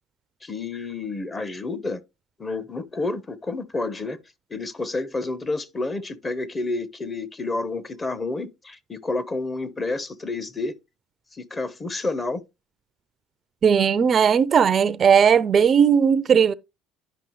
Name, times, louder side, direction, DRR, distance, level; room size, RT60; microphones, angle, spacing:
voice 1, 0.4-2.0 2.4-4.2 4.5-10.7 11.4-12.4, left 3 dB, 25° left, 1.0 m, -29 dB
voice 2, 13.6-16.5, right 7 dB, 40° right, 0.4 m, -17 dB
10.5 x 5.5 x 3.1 m
supercardioid pair, 85°, 0 cm